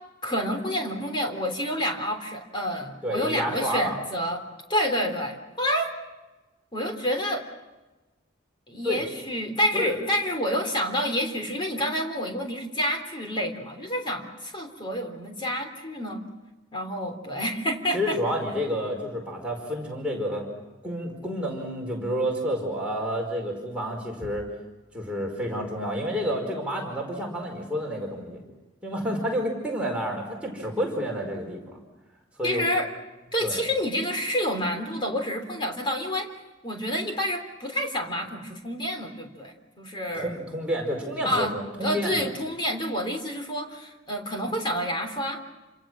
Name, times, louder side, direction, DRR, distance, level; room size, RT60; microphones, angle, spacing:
voice 1, 0.2-4.4 4.7-5.9 6.7-7.5 8.7-16.2 16.7-18.2 32.4-32.9 33.3-36.3 36.6-40.3 41.2-41.5 41.8-45.4, equal, 25° left, 4 dB, 3.4 m, -28 dB
voice 2, 3.0-4.0 8.8-9.0 9.7-9.9 17.9-20.4 20.8-24.5 24.9-28.4 28.8-31.8 32.4-32.7 33.4-33.6 40.1-42.3, equal, 5° right, -1 dB, 4.8 m, -29 dB
28.5 x 27.0 x 6.3 m, 1.1 s
head